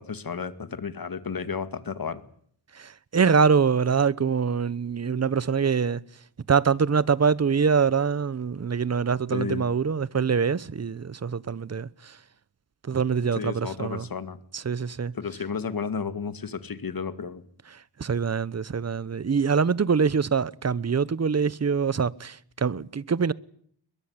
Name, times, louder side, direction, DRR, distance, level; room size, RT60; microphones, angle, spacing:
voice 1, 0.0-2.2 9.3-9.6 13.4-14.4 15.1-17.4, left 6 dB, 50° left, 2.3 m, -32 dB
voice 2, 2.7-6.0 6.5-12.2 12.8-14.1 14.5-15.1 17.7-23.3, right 6 dB, 35° right, 1.0 m, -24 dB
22.0 x 22.0 x 9.7 m
cardioid pair, 85°, 45 cm